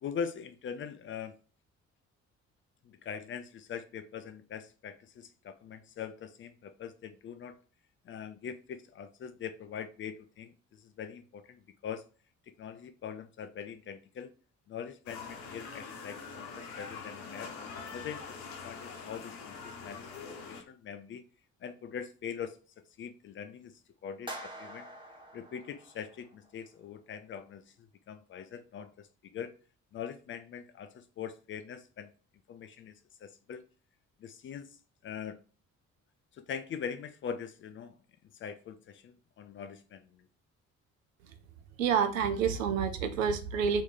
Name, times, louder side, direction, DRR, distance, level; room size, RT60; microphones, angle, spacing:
voice 1, 0.0-1.4 2.8-7.6 8.1-12.1 12.5-14.3 14.7-17.5 17.9-20.1 20.5-21.2 21.6-22.6 23.0-24.9 25.3-29.5 29.9-32.1 32.5-32.9 33.2-33.6 34.2-34.7 35.0-35.4 36.4-38.0 38.4-40.3, left 7 dB, 30° left, 0.4 m, -42 dB
sound 1, 15.1-20.6, left 5 dB, 60° left, 0.8 m, -44 dB
sound 2, 24.3-26.5, right 1 dB, 10° right, 1.1 m, -46 dB
voice 2, 41.8-43.8, right 6 dB, 80° right, 0.5 m, -28 dB
3.1 x 2.6 x 3.6 m
figure-of-eight pair, 45°, 40 cm